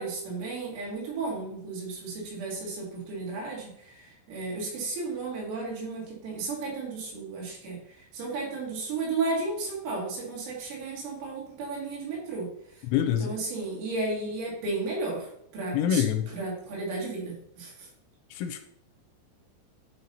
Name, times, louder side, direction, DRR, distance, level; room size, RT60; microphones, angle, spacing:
voice 1, 0.0-12.8 13.2-16.0 16.3-17.9, right 3 dB, 70° right, -4 dB, 4.7 m, -34 dB
voice 2, 12.9-13.3 15.7-16.3 18.3-18.6, left 9 dB, 85° left, 8 dB, 2.9 m, -25 dB
11.0 x 5.5 x 2.8 m, 0.70 s
omnidirectional pair, 5.8 m